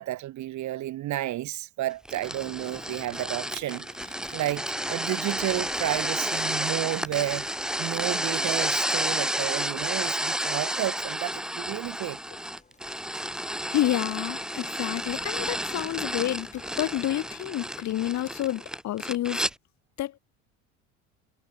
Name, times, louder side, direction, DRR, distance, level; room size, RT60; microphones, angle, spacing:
voice 1, 0.0-4.6 4.9-7.5 7.8-12.2, right 15 dB, 55° right, 2.2 m, -31 dB
sound 1, 2.1-19.5, equal, ahead, 2.1 m, -31 dB
sound 2, 2.7-18.4, left 4 dB, 20° left, 5.5 m, -54 dB
voice 2, 13.7-19.5 20.0-20.2, left 14 dB, 50° left, 1.9 m, -29 dB
hypercardioid pair, 75°, 35 cm